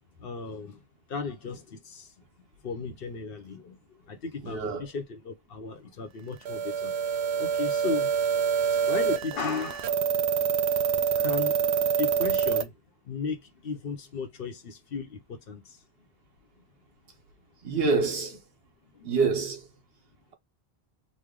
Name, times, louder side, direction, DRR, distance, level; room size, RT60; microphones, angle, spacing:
voice 1, 0.2-0.8 1.1-2.3 2.6-8.1 8.9-10.3 11.2-12.8 13.0-15.8 16.6-16.7 18.9-19.2, left 4 dB, 65° left, 0.9 m, -36 dB
voice 2, 4.4-4.9 17.6-18.4 19.0-19.7, right 4 dB, 70° right, 1.1 m, -26 dB
sound 1, 6.5-12.6, right 7 dB, 85° right, 0.8 m, -26 dB
3.2 x 2.2 x 3.6 m
omnidirectional pair, 1.1 m